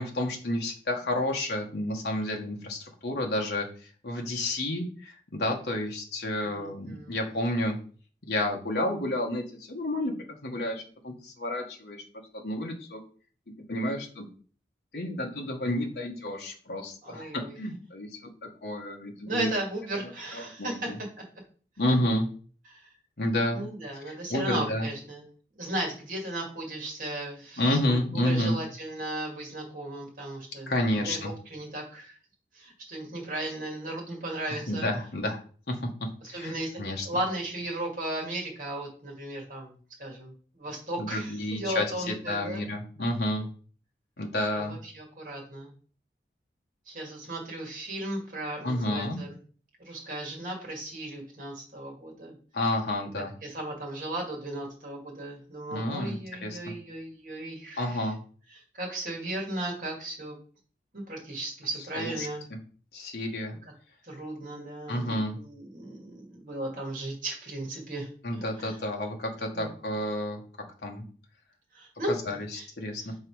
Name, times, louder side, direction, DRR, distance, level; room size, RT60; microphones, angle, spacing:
voice 1, 0.0-3.7 4.0-7.8 8.3-10.1 10.4-12.0 12.3-13.0 13.7-14.2 14.9-18.1 18.6-19.5 20.3-21.0 21.8-22.3 23.2-23.7 24.1-24.9 27.6-28.6 30.7-31.3 34.5-35.4 35.7-35.9 36.2-37.1 41.0-43.5 44.2-44.8 48.6-49.2 52.5-53.3 55.7-56.7 57.8-58.2 61.9-62.6 62.9-63.5 64.9-65.4 68.2-70.4 70.8-71.0 72.1-73.1, left 1 dB, 70° left, 1 dB, 1.1 m, -30 dB
voice 2, 6.4-7.2 17.0-17.6 19.2-21.2 21.9-22.0 22.7-22.8 23.5-25.2 25.6-31.2 31.5-32.2 32.5-34.8 36.3-36.8 37.0-39.7 40.0-42.6 44.5-45.7 46.9-49.4 49.8-52.3 53.4-58.1 58.8-60.4 60.9-62.5 64.1-68.1 68.6-68.7 69.5-69.7 71.7-72.1 72.5-72.7, right 1 dB, 50° right, 0 dB, 1.9 m, -36 dB
5.4 x 4.0 x 4.7 m, 0.42 s
head